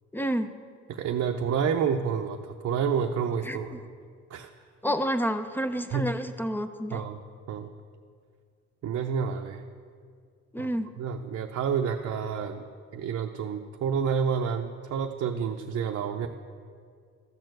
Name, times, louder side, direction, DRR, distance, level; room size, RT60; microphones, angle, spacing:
voice 1, 0.1-0.5 3.4-3.8 4.8-7.0 10.5-10.9, equal, 5° left, 10 dB, 0.5 m, -29 dB
voice 2, 0.9-3.8 4.3-4.5 5.9-6.1 6.9-7.2 7.5-7.7 8.8-9.6 10.6-10.7 11.0-12.6 12.9-16.3, right 7 dB, 55° right, 3 dB, 0.6 m, -29 dB
13.0 x 4.4 x 7.8 m, 2.1 s
cardioid pair, 90°, 30 cm